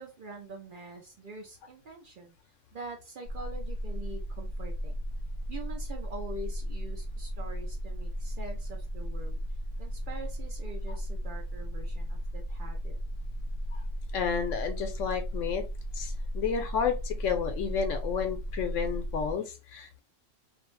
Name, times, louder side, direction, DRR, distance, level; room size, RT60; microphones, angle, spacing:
voice 1, 0.0-2.4 2.7-5.0 5.5-9.4 9.8-13.0, right 2 dB, 55° right, 2 dB, 0.6 m, -44 dB
sound 1, 3.3-19.3, equal, 75° right, 1.0 m, -35 dB
voice 2, 14.1-15.6 15.9-20.0, left 6 dB, 80° left, 6 dB, 0.9 m, -31 dB
2.6 x 2.0 x 3.0 m, 0.28 s
omnidirectional pair, 1.3 m